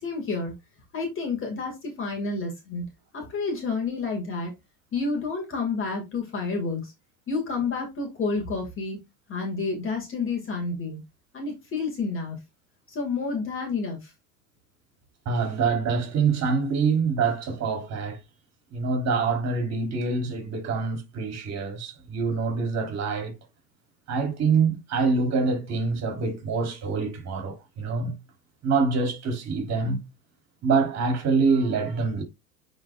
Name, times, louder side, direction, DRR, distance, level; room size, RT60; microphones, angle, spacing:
voice 1, 0.0-0.5 0.9-2.8 3.1-4.5 4.9-6.9 7.3-9.0 9.3-11.0 11.3-12.4 12.9-14.1, left 4 dB, 25° left, 2.2 m, -29 dB
voice 2, 15.2-18.2 18.7-23.4 24.1-28.1 28.6-30.0 30.6-32.2, right 4 dB, 35° right, 3.1 m, -25 dB
9.4 x 4.2 x 2.5 m
hypercardioid pair, 95°, 46 cm